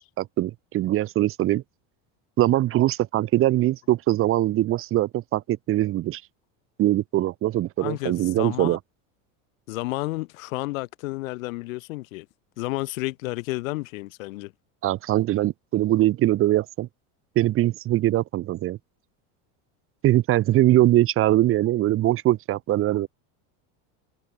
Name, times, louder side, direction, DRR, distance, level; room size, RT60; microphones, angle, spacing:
voice 1, 0.2-1.6 2.4-6.2 6.8-8.8 14.8-16.9 17.3-18.8 20.0-23.1, right 15 dB, 35° right, 1.4 m, -22 dB
voice 2, 7.8-8.8 9.7-12.3 12.6-14.5, left 21 dB, 85° left, 7.9 m, -31 dB
cardioid pair, 165°, 39 cm